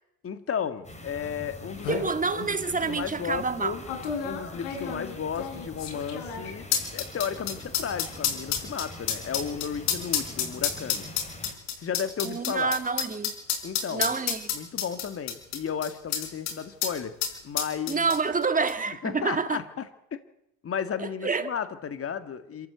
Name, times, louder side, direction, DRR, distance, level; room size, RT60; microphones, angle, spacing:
voice 1, 0.2-3.8 4.2-6.6 6.9-11.1 11.8-12.7 13.6-14.1 14.5-17.1 17.4-18.1 19.0-20.2 20.6-22.7, left 7 dB, 35° left, 1.9 m, -34 dB
sound 1, 0.8-11.5, left 1 dB, 15° left, 4.4 m, -44 dB
sound 2, 1.3-1.4 1.6-2.1 2.8-2.9 3.9-16.6 16.8-16.9 17.2-18.4 18.7-18.8, left 8 dB, 75° left, 5.1 m, -30 dB
voice 2, 1.9-3.8 4.9-5.0 12.2-13.4 13.9-14.5 17.9-19.6 21.0-21.5, right 4 dB, 20° right, 1.8 m, -28 dB
27.0 x 13.5 x 8.1 m
supercardioid pair, 100°, 42 cm